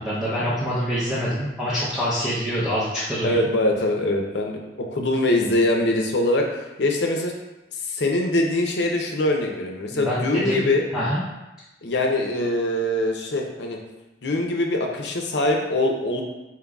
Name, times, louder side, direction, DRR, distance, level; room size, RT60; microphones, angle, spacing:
voice 1, 0.0-3.5 9.9-10.6 10.9-11.2, equal, 5° right, -11 dB, 0.6 m, -25 dB
voice 2, 3.2-7.3 7.7-10.8 11.8-13.8 14.2-16.2, left 1 dB, 70° left, 1 dB, 0.6 m, -23 dB
4.5 x 3.7 x 2.3 m, 1.0 s
head